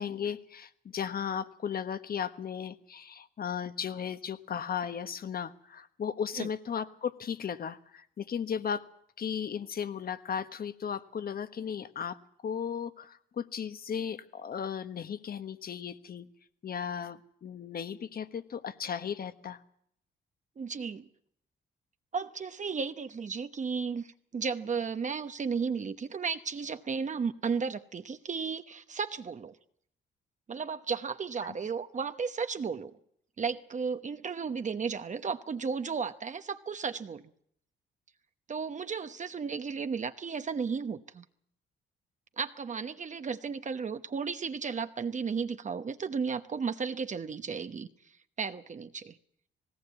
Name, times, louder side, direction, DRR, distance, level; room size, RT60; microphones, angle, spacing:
voice 1, 0.0-8.9 9.2-12.2 12.4-16.3 16.6-19.6 31.4-31.5, left 7 dB, 50° left, 12 dB, 1.4 m, -36 dB
voice 2, 20.6-21.1 22.1-29.6 30.5-32.9 33.4-37.3 38.5-41.2 42.4-47.9 48.4-49.2, right 5 dB, 40° right, 9 dB, 1.0 m, -34 dB
19.0 x 17.5 x 8.3 m, 0.69 s
cardioid pair, 90°, 20 cm